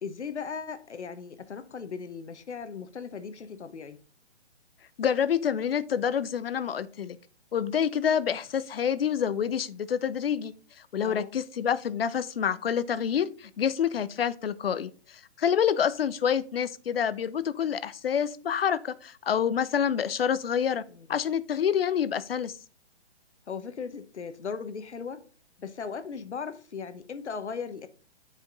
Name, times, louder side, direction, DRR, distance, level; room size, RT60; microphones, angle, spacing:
voice 1, 0.0-4.0 11.0-11.4 20.9-21.1 23.5-25.2 25.6-27.9, left 6 dB, 90° left, 1.0 m, -37 dB
voice 2, 5.0-7.2 7.5-10.5 10.9-20.8 21.1-22.5, left 8 dB, 60° left, 0.6 m, -27 dB
7.6 x 5.1 x 3.9 m
hypercardioid pair, 160°, 33 cm